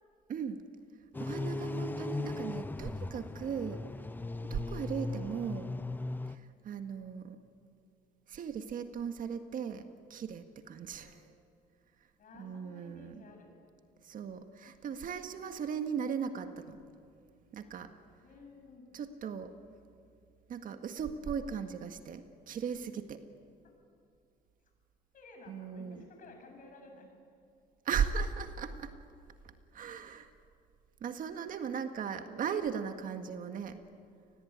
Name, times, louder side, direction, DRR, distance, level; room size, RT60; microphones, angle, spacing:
voice 1, 0.3-0.6 1.2-3.8 4.5-5.7 6.3-7.4 8.3-11.2 12.4-13.2 14.0-16.8 17.5-17.9 18.9-19.5 20.5-23.2 25.5-26.0 27.9-28.9 29.7-30.3 31.0-33.8, right 7 dB, 55° right, 7 dB, 1.8 m, -37 dB
sound 1, 1.1-6.4, left 2 dB, 10° left, 0.7 m, -38 dB
voice 2, 10.9-11.2 12.2-13.5 14.9-15.4 18.2-19.1 23.6-23.7 25.1-27.1, left 3 dB, 55° left, 3 dB, 7.3 m, -55 dB
28.5 x 20.0 x 9.6 m, 2.3 s
cardioid pair, 110°, 17 cm